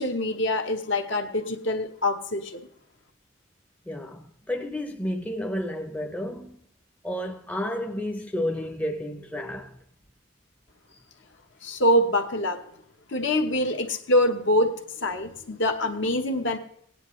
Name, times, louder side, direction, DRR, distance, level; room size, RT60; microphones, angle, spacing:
voice 1, 0.0-2.6 11.6-12.6 13.1-16.6, left 1 dB, 65° left, 1.1 m, -25 dB
voice 2, 3.9-6.7 7.0-9.8, left 1 dB, 5° left, 0.6 m, -31 dB
19.0 x 9.4 x 3.1 m
head